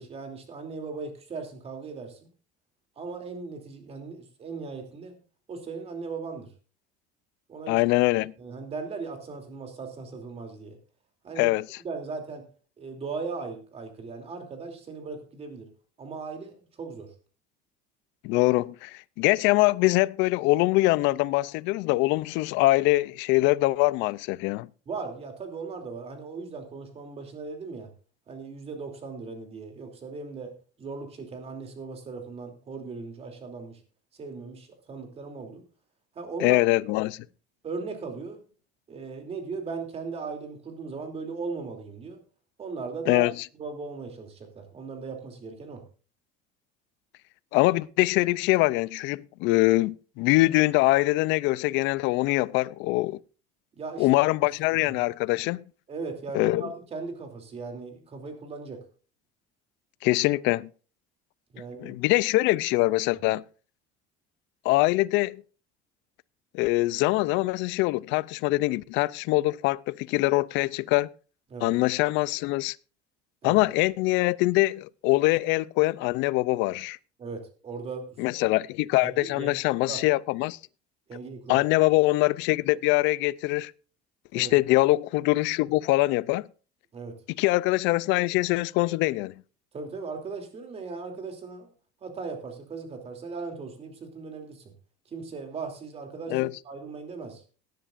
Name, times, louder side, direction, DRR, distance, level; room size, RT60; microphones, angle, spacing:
voice 1, 0.0-2.3 3.0-5.1 5.5-6.5 7.5-7.8 8.4-10.8 11.2-12.4 12.8-15.7 16.0-17.1 24.9-27.9 28.3-33.8 34.2-35.6 36.1-36.6 37.6-38.4 38.9-42.2 42.6-43.2 43.6-45.8 53.8-54.1 54.9-55.0 55.9-58.8 61.5-61.9 71.5-71.7 73.4-73.6 77.2-78.2 79.0-79.5 79.9-80.0 81.1-81.6 84.3-84.5 86.9-87.2 89.7-91.7 92.0-94.7 95.1-96.4 96.6-97.4, right 4 dB, 30° right, 2.9 m, -38 dB
voice 2, 7.7-8.3 11.4-11.6 18.2-24.7 36.4-37.2 43.1-43.3 47.5-53.2 54.0-55.6 56.3-56.7 60.0-60.7 61.8-63.4 64.6-65.4 66.5-71.1 71.6-72.8 73.4-77.0 78.2-80.6 81.5-83.7 84.3-86.5 87.4-89.3 96.3-96.5, left 20 dB, 70° left, 0.5 m, -23 dB
18.5 x 10.0 x 2.5 m
cardioid pair, 135°, 20 cm